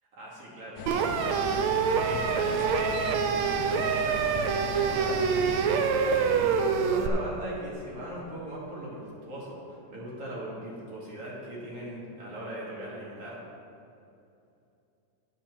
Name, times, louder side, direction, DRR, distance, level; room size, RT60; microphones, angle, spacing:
voice 1, 0.1-5.6 6.2-13.5, right 1 dB, 45° right, -5 dB, 3.0 m, -40 dB
sound 1, 0.8-5.9, left 7 dB, 80° left, 2.0 m, -39 dB
sound 2, 0.9-7.1, right 6 dB, 75° right, 1.7 m, -26 dB
10.5 x 7.2 x 6.1 m, 2.6 s
omnidirectional pair, 3.7 m